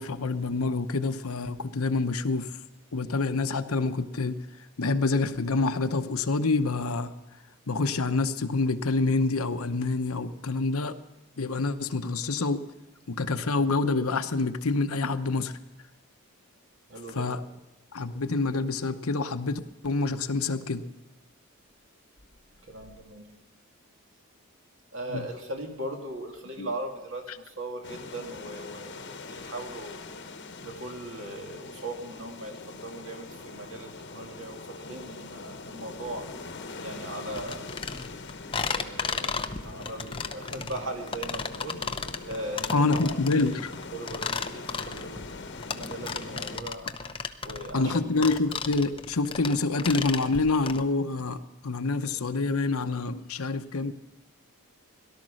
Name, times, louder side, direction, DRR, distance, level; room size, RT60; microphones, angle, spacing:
voice 1, 0.0-2.5 2.9-4.4 4.8-7.1 7.7-11.0 11.4-12.6 13.1-15.5 17.1-17.4 17.9-20.8 25.1-25.3 26.6-26.7 42.7-43.7 47.7-53.9, left 3 dB, 75° left, 9 dB, 0.9 m, -27 dB
voice 2, 16.9-17.5 22.6-23.3 24.9-30.1 30.6-36.3 36.7-37.7 38.5-43.2 43.9-45.4 45.7-46.9 47.4-48.2, right 1 dB, 60° right, 2 dB, 2.5 m, -39 dB
sound 1, 27.8-46.6, left 3 dB, 50° left, 1.1 m, -42 dB
sound 2, 37.3-50.8, left 5 dB, 25° left, 0.7 m, -34 dB
18.0 x 12.0 x 6.4 m, 0.95 s
head